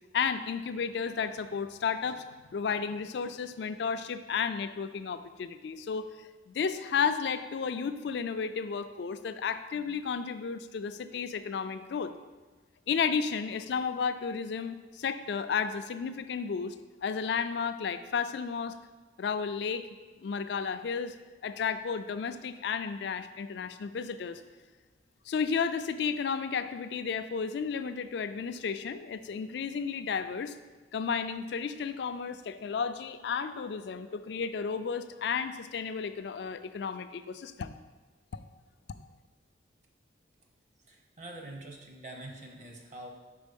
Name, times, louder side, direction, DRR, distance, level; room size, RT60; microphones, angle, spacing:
voice 1, 0.1-2.2 2.5-6.1 6.5-12.1 12.9-16.7 17.0-18.7 19.2-19.8 20.2-21.1 21.4-24.4 25.3-30.5 30.9-37.8 38.3-38.4, left 6 dB, 60° left, 11 dB, 0.3 m, -33 dB
voice 2, 40.8-43.1, right 1 dB, 40° right, 1 dB, 0.8 m, -45 dB
5.3 x 4.1 x 5.2 m, 1.3 s
head